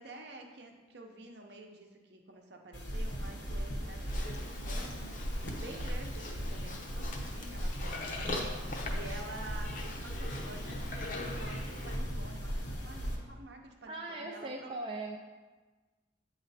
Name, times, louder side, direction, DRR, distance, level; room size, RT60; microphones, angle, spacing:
voice 1, 0.0-14.7, right 2 dB, 60° right, 2 dB, 0.8 m, -49 dB
sound 1, 2.7-13.2, equal, 70° left, 1.1 m, -38 dB
Livestock farm animals working animals, 4.1-12.0, left 2 dB, 45° left, 0.8 m, -42 dB
voice 2, 13.9-15.2, right 2 dB, 30° right, 0 dB, 0.4 m, -39 dB
8.8 x 3.1 x 4.1 m, 1.3 s
head